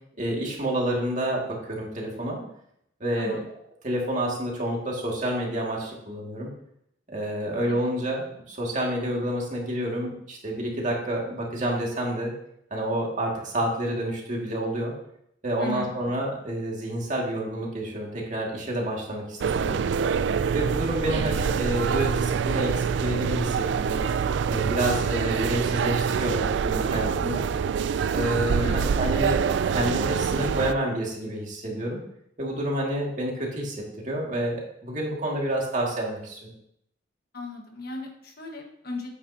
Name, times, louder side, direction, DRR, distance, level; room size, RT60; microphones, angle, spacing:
voice 1, 0.2-2.4 3.0-3.4 3.8-6.5 7.1-12.3 12.7-14.9 15.4-19.8 20.5-24.1 24.5-27.5 28.1-29.4 29.7-32.0 32.4-33.8 34.0-36.5, right 1 dB, 40° right, -2 dB, 2.1 m, -29 dB
voice 2, 3.2-3.5 7.7-7.9 15.6-16.1 21.0-21.4 28.6-28.8 37.3-39.1, left 1 dB, 55° left, 2 dB, 1.4 m, -37 dB
sound 1, 19.4-30.7, right 6 dB, 65° right, 0.3 m, -25 dB
9.3 x 8.5 x 2.8 m, 0.74 s
head